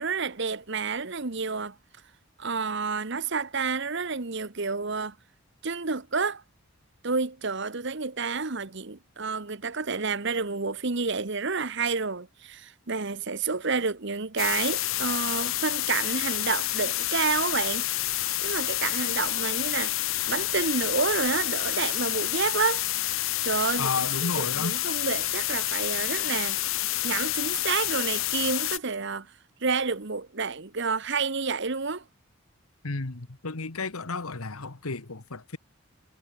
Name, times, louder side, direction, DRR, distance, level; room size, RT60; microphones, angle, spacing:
voice 1, 0.0-1.8 2.4-5.1 5.6-6.4 7.0-17.9 18.4-20.0 20.3-22.8 23.4-26.6 27.0-29.3 29.6-32.0, right 4 dB, 55° right, 1.2 m, -29 dB
sound 1, 14.4-28.8, left 15 dB, 70° left, 1.1 m, -29 dB
voice 2, 23.8-24.7 32.8-35.6, left 3 dB, 85° left, 1.6 m, -32 dB
head